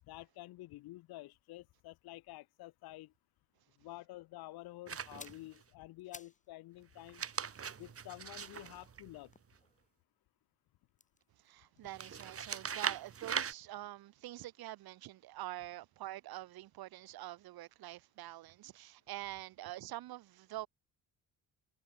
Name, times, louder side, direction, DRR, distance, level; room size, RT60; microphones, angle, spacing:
voice 1, 0.1-3.1 3.8-7.2 7.8-9.3, left 18 dB, 90° left, 1.6 m, -50 dB
sound 1, 4.9-5.6 7.0-9.6 11.9-13.5, right 7 dB, 40° right, 3.0 m, -40 dB
sound 2, 5.0-6.5 6.8-10.1 10.9-12.9 13.2-13.4, left 3 dB, 20° left, 8.0 m, -59 dB
voice 2, 11.4-20.7, right 15 dB, 80° right, 3.1 m, -46 dB
cardioid pair, 105°, 36 cm